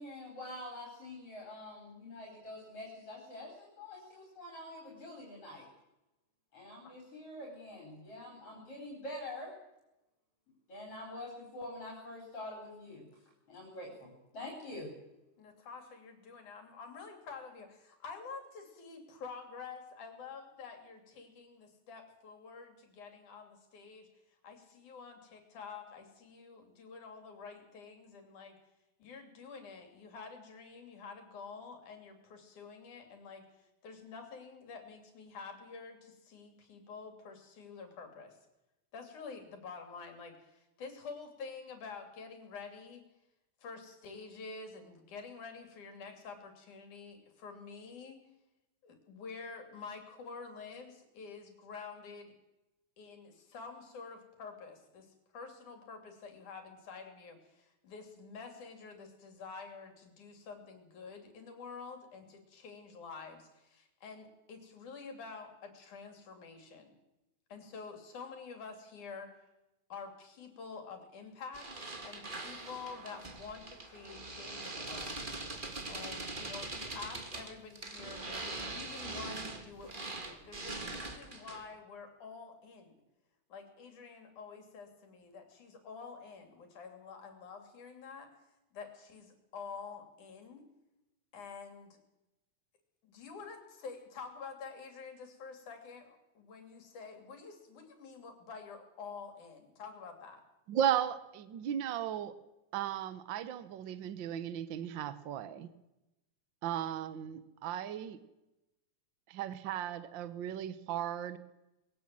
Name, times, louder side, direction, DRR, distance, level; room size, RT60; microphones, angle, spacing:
voice 1, 0.0-5.7 6.5-9.5 10.7-13.1 13.5-14.9, left 1 dB, 50° left, -1 dB, 5.1 m, -46 dB
voice 2, 15.4-24.1 24.4-28.6 29.0-38.4 38.9-43.0 43.6-48.2 48.8-52.3 53.0-66.9 67.5-69.4 69.9-71.7 72.0-75.3 75.9-83.0 83.5-88.3 88.7-90.7 91.3-92.0 93.0-100.4, left 5 dB, 75° left, 6 dB, 4.4 m, -48 dB
sound 1, 71.5-81.7, right 2 dB, 20° right, 1.5 m, -42 dB
voice 3, 100.7-102.3 102.7-105.7 106.6-108.2 109.3-111.4, right 10 dB, 80° right, 13 dB, 1.0 m, -35 dB
21.5 x 17.0 x 7.7 m, 0.96 s
omnidirectional pair, 3.6 m